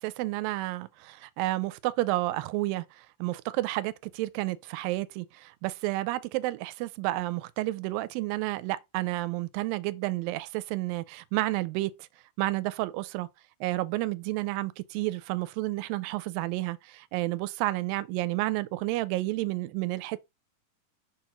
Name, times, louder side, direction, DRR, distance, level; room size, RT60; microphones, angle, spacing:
voice 1, 0.0-12.1 12.4-13.3 13.6-20.2, right 18 dB, 85° right, 2.3 m, -31 dB
6.7 x 3.0 x 5.8 m
omnidirectional pair, 4.0 m